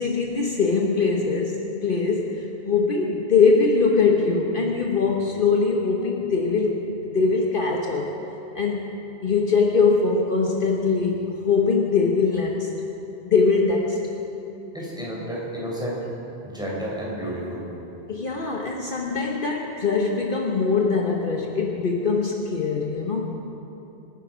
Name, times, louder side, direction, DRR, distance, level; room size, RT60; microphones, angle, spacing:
voice 1, 0.0-8.1 8.5-8.9 9.2-12.7 13.3-14.0 18.1-23.2, left 4 dB, 55° left, -1 dB, 1.4 m, -22 dB
voice 2, 14.7-16.0 16.4-17.7, equal, 5° right, -5 dB, 4.1 m, -31 dB
25.0 x 10.0 x 5.2 m, 2.9 s
omnidirectional pair, 1.1 m